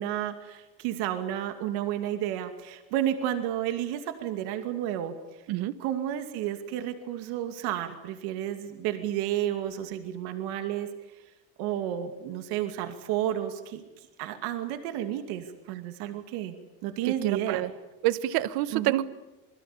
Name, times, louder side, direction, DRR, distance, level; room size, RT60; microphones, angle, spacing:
voice 1, 0.0-5.1 5.8-10.9 11.6-13.8 14.2-16.6 16.8-17.6 18.7-19.0, right 11 dB, 85° right, 7 dB, 2.6 m, -31 dB
voice 2, 17.0-17.7 18.0-19.1, right 15 dB, 70° right, 15 dB, 1.3 m, -27 dB
27.5 x 22.0 x 8.6 m, 1.1 s
cardioid pair, 160°, 38 cm